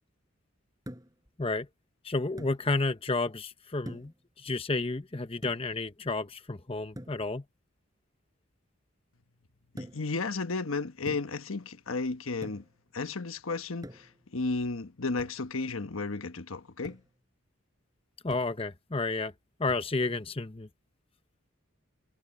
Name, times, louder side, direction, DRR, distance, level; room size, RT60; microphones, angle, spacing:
sound 1, 0.9-1.3 2.4-2.6 3.9-4.2 5.4-5.8 7.0-7.2 9.8-10.2 11.1-11.5 12.4-12.8 13.8-14.2 15.2-15.4 16.8-17.1 18.3-18.6 19.7-19.9, equal, 15° right, 5.8 m, -45 dB
voice 1, 2.0-4.1 4.4-7.4 18.2-19.3 19.6-20.7, left 3 dB, 25° left, 0.9 m, -31 dB
voice 2, 9.7-12.6 12.9-17.0, left 3 dB, 80° left, 1.2 m, -33 dB
head